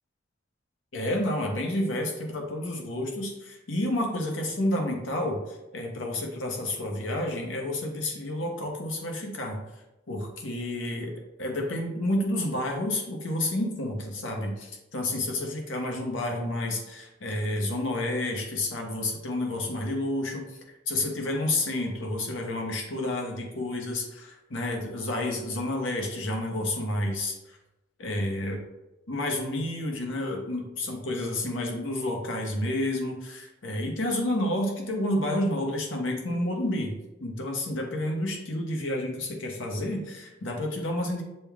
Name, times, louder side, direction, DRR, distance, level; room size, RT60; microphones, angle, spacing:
voice 1, 0.9-9.6 10.1-20.4 20.9-27.6 28.0-28.6 29.1-41.2, left 1 dB, 85° left, 0 dB, 1.0 m, -30 dB
6.7 x 2.3 x 3.4 m, 0.99 s
head